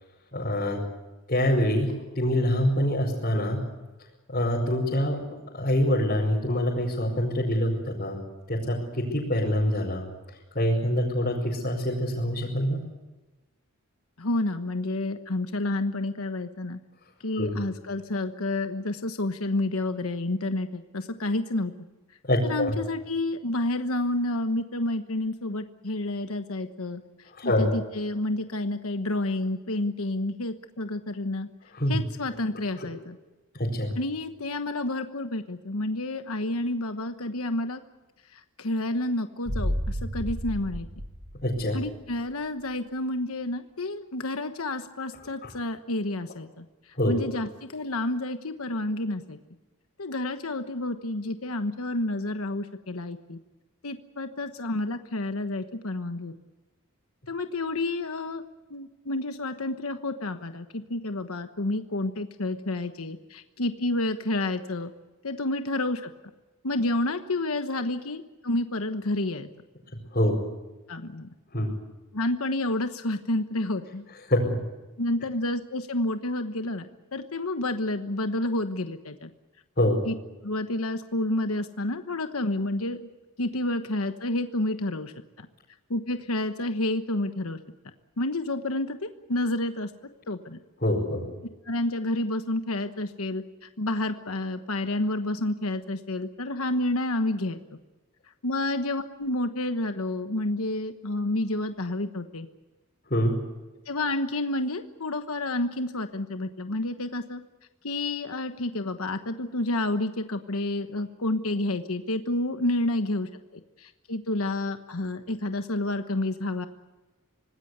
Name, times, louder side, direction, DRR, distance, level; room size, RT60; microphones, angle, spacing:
voice 1, 0.3-0.8 1.3-3.6 4.3-5.2 5.5-8.2 8.5-10.1 10.6-12.8 17.4-17.6 22.2-22.7 27.4-27.7 31.7-32.0 33.5-33.9 41.4-41.8 45.4-45.5 47.0-47.2 70.1-70.4 71.5-71.7 74.3-74.6 79.8-80.0 90.8-91.3 103.1-103.4, left 1 dB, 40° left, -5 dB, 5.4 m, -25 dB
voice 2, 14.2-16.8 17.2-21.7 22.4-27.0 27.4-31.5 31.9-33.2 34.0-37.8 38.6-40.9 41.7-46.6 47.0-49.4 50.0-53.4 53.8-56.3 57.3-58.4 58.7-64.9 65.2-66.1 66.6-69.5 70.9-71.3 72.1-74.0 75.0-79.3 80.1-80.2 80.4-83.1 83.4-85.1 85.4-85.5 85.9-87.6 88.2-89.9 90.3-90.6 91.7-93.4 93.8-97.6 98.4-102.5 103.9-107.4 107.8-113.3 113.8-116.7, left 2 dB, 75° left, 8 dB, 1.2 m, -29 dB
sound 1, 39.4-42.1 42.4-42.5, equal, 60° right, 5.3 m, -32 dB
26.0 x 19.5 x 8.1 m, 1.1 s
head